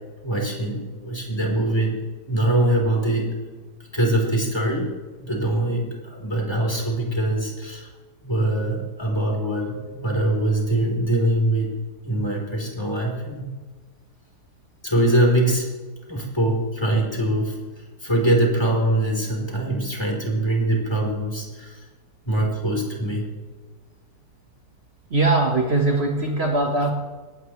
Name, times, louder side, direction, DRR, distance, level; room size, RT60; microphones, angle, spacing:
voice 1, 0.2-1.9 2.3-3.3 3.9-4.9 5.2-7.9 8.2-11.7 12.0-13.5 14.8-15.7 16.1-17.6 18.0-21.8 22.2-23.2, right 1 dB, 15° left, -1 dB, 4.0 m, -23 dB
voice 2, 25.1-26.9, right 2 dB, 40° right, 1 dB, 1.7 m, -21 dB
20.0 x 17.0 x 3.3 m, 1.3 s
omnidirectional pair, 1.7 m